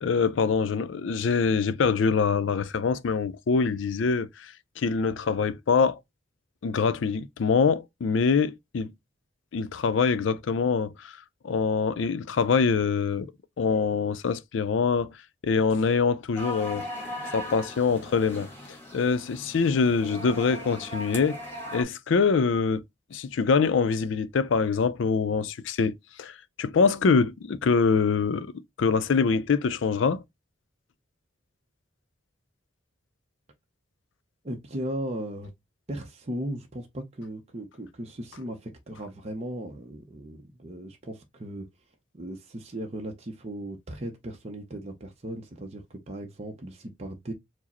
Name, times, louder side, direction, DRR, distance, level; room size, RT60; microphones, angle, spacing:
voice 1, 0.0-6.0 6.6-8.9 9.5-11.1 11.4-13.3 13.6-15.1 15.4-16.8 17.3-18.5 18.9-21.4 21.7-22.8 23.1-28.5 28.8-30.2, left 5 dB, 75° left, 0.4 m, -24 dB
sound 1, 16.4-21.8, left 1 dB, 10° left, 1.5 m, -38 dB
voice 2, 34.4-35.5 35.9-41.7 42.1-47.3, right 1 dB, 35° right, 0.6 m, -37 dB
4.7 x 2.0 x 4.1 m
head